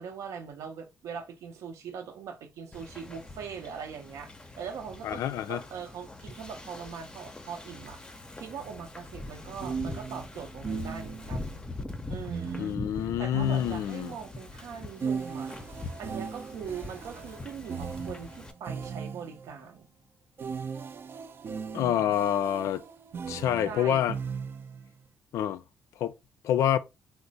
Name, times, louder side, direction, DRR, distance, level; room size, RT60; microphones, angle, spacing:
voice 1, 0.0-5.2 5.5-8.0 8.4-11.6 12.1-15.5 16.0-19.9 21.7-22.3 23.7-24.0, right 7 dB, 80° right, 0.8 m, -41 dB
Wind / Ocean, 2.7-18.5, left 2 dB, 15° left, 0.5 m, -42 dB
voice 2, 5.0-5.6 12.6-14.1 21.7-22.8 23.3-24.2 25.3-25.6 26.0-26.1 26.4-26.8, left 10 dB, 85° left, 0.4 m, -27 dB
sound 1, 8.6-8.7 9.6-11.4 12.3-14.2 15.0-19.5 20.4-24.9, right 6 dB, 45° right, 0.4 m, -37 dB
3.2 x 2.1 x 4.0 m
cardioid pair, 105°, 5 cm